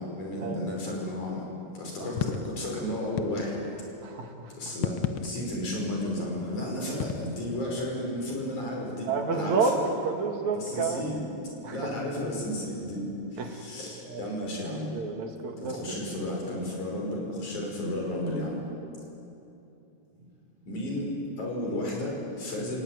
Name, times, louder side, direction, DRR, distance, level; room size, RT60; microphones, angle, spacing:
voice 1, 0.0-1.5 1.7-3.6 4.5-9.7 10.5-11.2 11.7-13.1 13.3-14.9 15.6-18.7 20.6-22.8, left 1 dB, 90° left, -1 dB, 6.9 m, -33 dB
sound 1, 2.2-2.6 3.2-3.8 4.7-5.7 7.0-7.3, left 8 dB, 70° left, 1.3 m, -32 dB
voice 2, 4.0-4.5 9.1-9.8 10.0-11.0 11.6-11.8 13.4-13.6 14.1-14.2 14.9-15.9, right 5 dB, 70° right, 3 dB, 3.3 m, -29 dB
29.0 x 16.5 x 9.6 m, 2.9 s
omnidirectional pair, 3.4 m